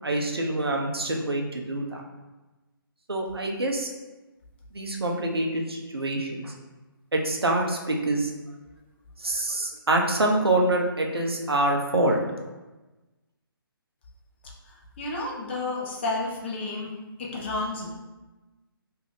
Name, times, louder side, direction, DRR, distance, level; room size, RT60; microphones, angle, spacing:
voice 1, 0.0-2.0 3.1-3.9 4.7-6.5 7.1-8.3 9.2-12.2, right 2 dB, 85° right, 0 dB, 0.6 m, -26 dB
voice 2, 15.0-16.9 17.2-17.9, left 2 dB, 30° left, -3 dB, 0.5 m, -31 dB
2.6 x 2.4 x 3.3 m, 1.1 s
figure-of-eight pair, 145°, 12 cm